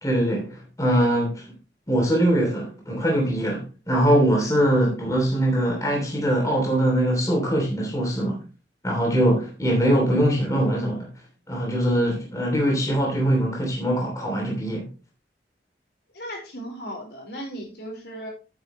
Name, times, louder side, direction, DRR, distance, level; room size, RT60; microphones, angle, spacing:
voice 1, 0.0-1.4 1.9-8.4 8.8-11.1 11.5-14.9, right 1 dB, 20° left, 3.0 m, -22 dB
voice 2, 16.1-18.3, equal, 65° left, 4.4 m, -36 dB
11.0 x 9.0 x 3.1 m
head